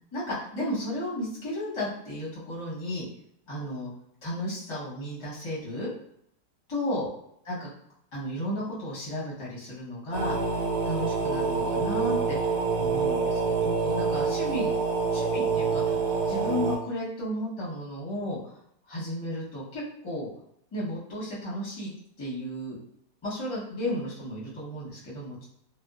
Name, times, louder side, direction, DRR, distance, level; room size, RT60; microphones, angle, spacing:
voice 1, 0.1-3.0 3.5-3.9 4.2-5.9 6.7-7.1 7.4-7.7 8.1-10.3 10.8-14.7 15.1-16.0 16.3-18.5 18.9-20.3 20.7-21.9 22.2-22.8 23.2-25.4, left 1 dB, 20° left, -7 dB, 0.9 m, -33 dB
sound 1, 10.1-16.8, right 5 dB, 75° right, 1.4 m, -26 dB
2.8 x 2.2 x 2.4 m, 0.71 s
omnidirectional pair, 1.7 m